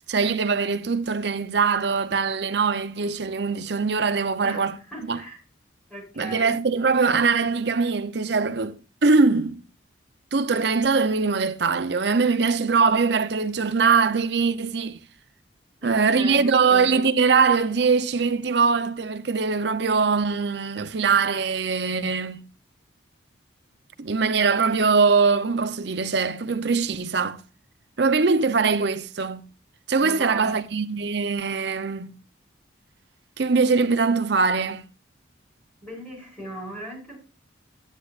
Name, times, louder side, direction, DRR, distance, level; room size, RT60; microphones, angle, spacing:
voice 1, 0.0-4.8 5.1-5.2 6.2-9.6 10.3-15.0 15.8-22.4 24.0-27.4 28.0-29.4 29.9-32.2 33.4-34.8, right 4 dB, 60° right, 0.6 m, -22 dB
voice 2, 4.4-5.4 5.9-6.6 15.8-17.0 30.0-30.6 35.8-37.2, right 1 dB, 10° left, 5.6 m, -38 dB
11.0 x 9.9 x 2.5 m
head